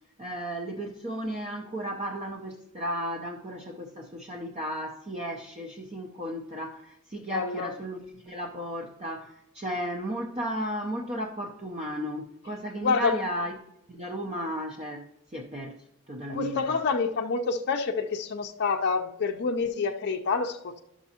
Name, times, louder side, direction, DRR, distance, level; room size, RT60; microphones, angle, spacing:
voice 1, 0.2-13.5 13.9-16.6, equal, 30° right, 1 dB, 0.6 m, -34 dB
voice 2, 7.3-7.7 12.8-13.2 16.3-20.8, left 4 dB, 50° left, 3 dB, 0.5 m, -27 dB
12.0 x 6.1 x 2.8 m, 0.87 s
head